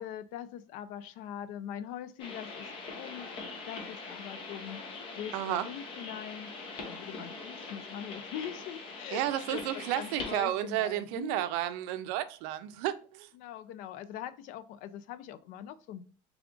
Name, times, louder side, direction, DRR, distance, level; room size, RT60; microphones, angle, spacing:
voice 1, 0.0-4.8 5.2-6.5 6.9-11.5 13.3-16.0, left 10 dB, 60° left, 0.4 m, -42 dB
sound 1, 2.2-10.4, left 3 dB, 35° left, 0.7 m, -42 dB
voice 2, 5.3-5.7 9.1-13.3, right 13 dB, 80° right, 0.4 m, -32 dB
3.4 x 2.4 x 3.7 m
cardioid pair, 160°, 15 cm